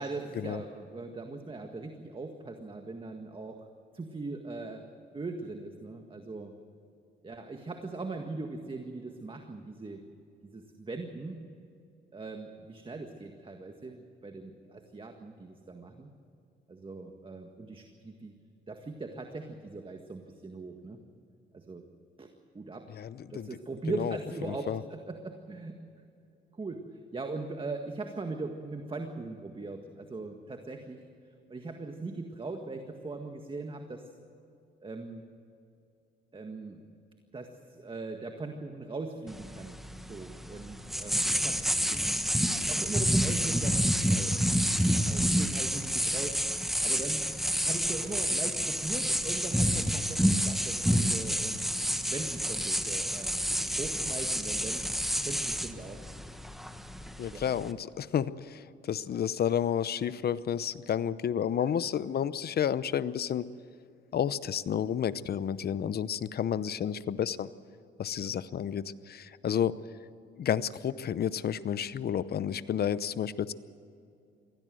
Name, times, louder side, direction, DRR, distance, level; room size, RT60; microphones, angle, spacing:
voice 1, 0.0-3.7 3.9-4.8 5.1-6.5 7.2-10.0 10.4-11.4 12.1-16.1 16.7-18.3 18.7-21.0 21.5-21.8 22.2-22.3 22.5-22.9 23.3-25.8 26.5-31.0 31.5-34.0 34.8-35.2 36.3-36.9 37.3-39.8 40.1-41.6 41.9-42.1 42.4-44.4 45.1-46.4 46.8-47.2 47.6-51.7 52.1-53.4 53.8-55.0 55.2-56.0 57.3-57.4 61.6-61.7 69.5-69.7, right 3 dB, 25° right, 5 dB, 1.8 m, -40 dB
voice 2, 22.9-23.5 23.9-24.2 24.5-24.8 57.2-63.4 64.1-67.5 68.0-69.8 70.4-73.5, left 9 dB, 50° left, 16 dB, 0.8 m, -31 dB
sound 1, 39.3-57.7, equal, ahead, 1.3 m, -29 dB
23.0 x 16.5 x 7.8 m, 2.6 s
cardioid pair, 90°, 20 cm